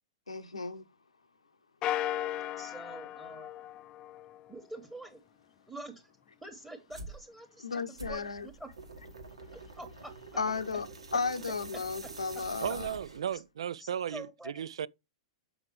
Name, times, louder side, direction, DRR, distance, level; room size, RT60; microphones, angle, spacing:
voice 1, 0.3-0.9 7.6-8.5 10.4-10.9 11.1-12.9, left 4 dB, 90° left, 0.8 m, -34 dB
sound 1, 1.8-4.5, left 12 dB, 30° left, 0.4 m, -36 dB
voice 2, 2.6-3.5 4.5-5.2 5.7-6.1 6.4-8.7 9.7-10.1 11.7-11.8 13.3-13.4 13.8-14.6, right 1 dB, 10° right, 1.3 m, -46 dB
sound 2, 6.9-7.2 8.0-13.4, right 3 dB, 90° right, 1.4 m, -46 dB
voice 3, 12.6-14.9, right 9 dB, 75° right, 0.3 m, -35 dB
7.2 x 4.7 x 3.2 m
hypercardioid pair, 110°, 3 cm